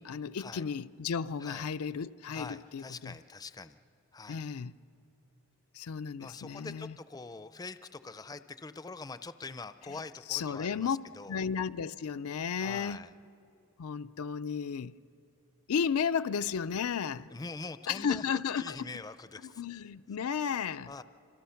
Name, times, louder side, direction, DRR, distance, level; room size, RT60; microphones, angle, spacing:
voice 1, 0.0-3.2 4.3-4.7 5.7-6.9 9.9-10.0 10.3-11.0 11.3-13.1 13.8-14.9 15.7-17.3 17.9-19.0 19.4-20.9, left 7 dB, 85° left, 0.5 m, -33 dB
voice 2, 2.3-3.8 4.1-4.4 6.2-10.9 11.1-11.4 12.6-13.1 17.3-18.2 18.6-19.8 20.9-21.0, left 3 dB, 15° left, 0.4 m, -44 dB
26.5 x 26.0 x 5.8 m
head